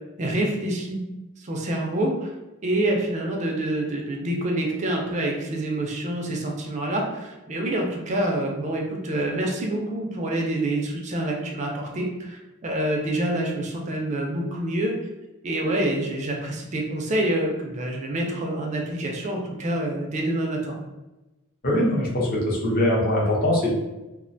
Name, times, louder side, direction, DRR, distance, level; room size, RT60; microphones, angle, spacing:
voice 1, 0.2-1.0 1.4-2.3 2.6-14.9 15.4-20.8, right 1 dB, 35° right, 1 dB, 0.4 m, -27 dB
voice 2, 21.6-23.7, left 1 dB, 45° left, -4 dB, 0.7 m, -22 dB
2.3 x 2.1 x 2.6 m, 1.0 s
head